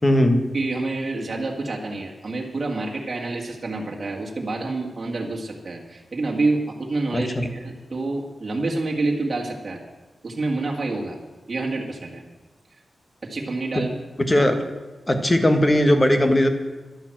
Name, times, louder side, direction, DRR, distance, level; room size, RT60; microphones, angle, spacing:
voice 1, 0.0-0.4 7.1-7.5 13.7-13.8 14.2-14.6 15.1-16.5, left 1 dB, 20° left, 7 dB, 1.4 m, -18 dB
voice 2, 0.5-9.8 10.2-11.2 11.5-12.2 13.2-13.9 14.4-14.5, right 2 dB, 40° right, -1 dB, 2.0 m, -27 dB
12.0 x 9.2 x 7.8 m, 1.2 s
wide cardioid pair, 130°, 0 cm